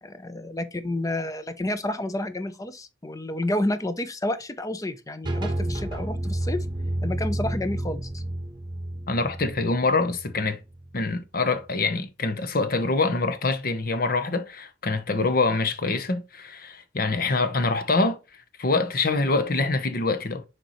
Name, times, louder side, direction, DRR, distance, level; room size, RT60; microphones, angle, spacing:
voice 1, 0.0-6.6 7.0-8.2, left 1 dB, 20° left, 0.6 m, -30 dB
sound 1, 5.2-10.9, right 1 dB, 25° right, 1.1 m, -30 dB
voice 2, 9.1-10.6 10.9-18.2 18.6-20.4, left 3 dB, 50° left, 0.9 m, -25 dB
6.6 x 4.6 x 3.1 m
head